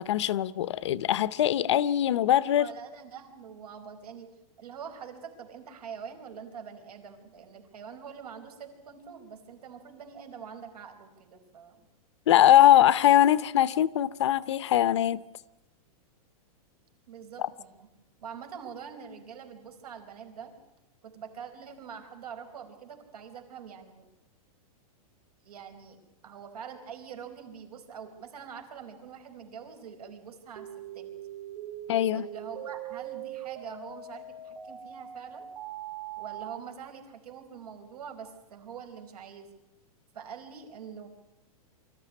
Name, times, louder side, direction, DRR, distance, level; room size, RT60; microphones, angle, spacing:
voice 1, 0.0-2.7 12.3-15.2 17.4-17.5 31.9-32.3, left 12 dB, 50° left, 0.7 m, -22 dB
voice 2, 2.6-4.3 4.6-11.8 17.1-17.9 18.2-20.5 21.0-24.0 25.4-30.7 30.9-31.1 32.1-35.5 36.2-39.5 40.1-41.1, right 7 dB, 80° right, 4.9 m, -44 dB
sound 1, 30.6-36.6, right 9 dB, 50° right, 3.3 m, -41 dB
25.0 x 14.5 x 10.0 m
supercardioid pair, 180°, 19 cm